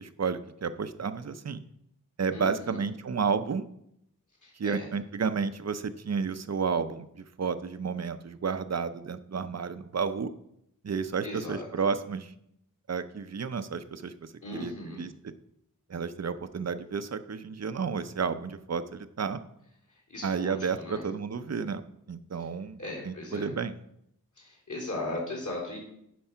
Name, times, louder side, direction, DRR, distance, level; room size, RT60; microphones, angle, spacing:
voice 1, 0.0-1.6 2.2-3.7 4.6-10.3 10.8-12.3 12.9-15.3 15.9-19.4 20.2-22.8 23.0-23.8, right 5 dB, 45° right, 11 dB, 0.6 m, -31 dB
voice 2, 2.3-2.8 4.4-4.9 11.2-11.6 14.4-15.0 19.9-21.0 22.8-23.5 24.4-25.8, left 2 dB, 55° left, -4 dB, 3.2 m, -38 dB
10.5 x 4.7 x 5.6 m, 0.76 s
wide cardioid pair, 75°, 36 cm